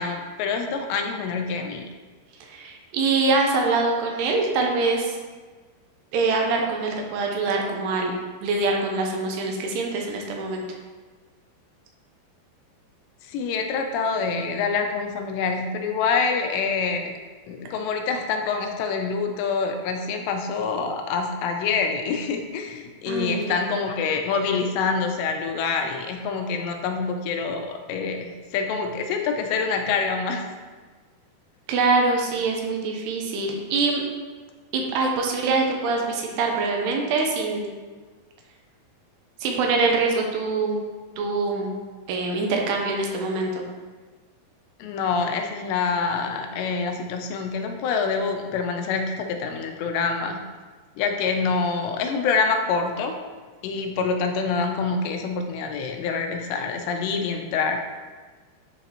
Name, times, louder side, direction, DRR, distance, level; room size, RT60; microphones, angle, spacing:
voice 1, 0.0-1.9 13.3-17.1 17.5-30.4 44.8-50.4 51.0-53.1 53.6-57.8, left 5 dB, 85° left, 4 dB, 2.8 m, -26 dB
voice 2, 2.5-5.2 6.1-8.1 8.4-10.6 23.1-23.6 31.7-34.0 34.7-37.7 39.4-40.8 41.2-41.7 42.1-43.6, right 3 dB, 80° right, 1 dB, 2.8 m, -24 dB
10.5 x 3.9 x 2.9 m, 1.4 s
omnidirectional pair, 4.9 m